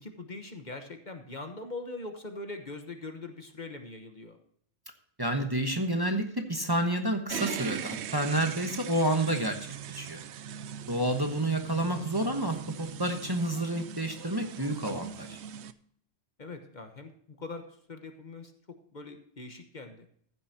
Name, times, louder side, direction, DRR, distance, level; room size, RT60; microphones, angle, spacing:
voice 1, 0.0-4.4 16.4-20.1, left 2 dB, 40° left, 6 dB, 1.3 m, -42 dB
voice 2, 5.2-9.6 9.9-10.2 10.9-15.4, right 1 dB, 20° right, 4 dB, 1.2 m, -29 dB
sound 1, 7.3-15.7, right 9 dB, 75° right, 0.9 m, -40 dB
15.0 x 9.6 x 2.8 m, 0.64 s
omnidirectional pair, 1.2 m